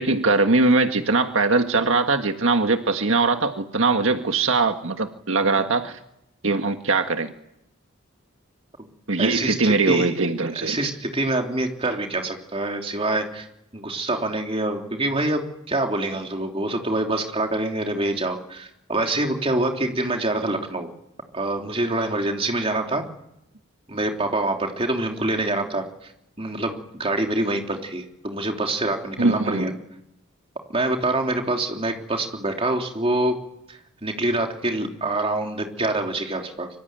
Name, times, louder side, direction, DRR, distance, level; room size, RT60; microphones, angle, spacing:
voice 1, 0.0-6.0 6.4-7.3 9.1-10.8 29.2-29.7, right 3 dB, 70° right, 6 dB, 1.7 m, -21 dB
voice 2, 9.2-10.2 10.6-13.5 13.7-20.9 21.3-23.1 23.9-25.9 26.4-29.7 30.7-33.4 33.7-36.7, right 2 dB, 30° right, 2 dB, 3.4 m, -25 dB
25.0 x 24.5 x 9.2 m, 0.79 s
head